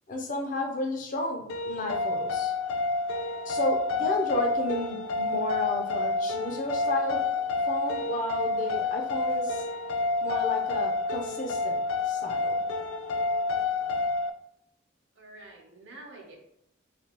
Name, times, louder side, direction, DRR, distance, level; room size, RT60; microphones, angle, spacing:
voice 1, 0.1-2.5 3.4-7.2 7.7-9.6 10.2-11.8 12.0-12.6, left 1 dB, 40° left, 1 dB, 0.6 m, -32 dB
sound 1, 1.5-14.3, left 3 dB, 90° left, 0.3 m, -29 dB
voice 2, 15.1-16.3, right 2 dB, 60° right, -1 dB, 0.8 m, -47 dB
3.4 x 2.8 x 2.9 m, 0.76 s
head